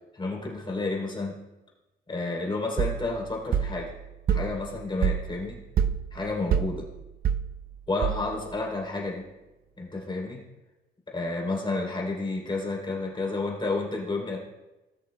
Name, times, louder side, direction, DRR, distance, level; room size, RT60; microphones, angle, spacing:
voice 1, 0.1-1.4 2.1-3.9 4.3-5.6 6.1-6.9 7.9-9.2 9.8-10.4 11.1-14.4, left 2 dB, 25° left, -2 dB, 3.2 m, -30 dB
sound 1, 2.8-8.6, right 8 dB, 50° right, 0.5 m, -29 dB
19.0 x 6.5 x 2.2 m, 1.0 s
cardioid pair, 90°, 20 cm